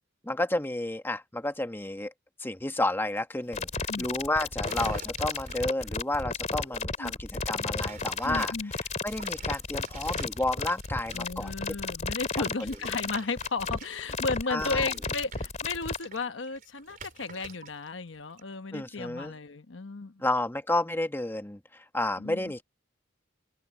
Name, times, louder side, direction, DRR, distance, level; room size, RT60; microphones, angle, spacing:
voice 1, 0.2-2.1 2.4-8.5 9.0-11.5 14.5-14.9 18.7-19.3 20.2-22.6, left 1 dB, 10° left, 1.4 m, -31 dB
sound 1, 3.5-16.0, left 4 dB, 40° left, 2.7 m, -33 dB
sound 2, 4.6-5.9 7.8-8.5 9.0-11.5 12.5-17.9 18.1-18.4, right 5 dB, 45° right, 3.4 m, -47 dB
voice 2, 8.2-8.7 11.1-20.2 22.2-22.5, left 3 dB, 75° left, 1.1 m, -34 dB
head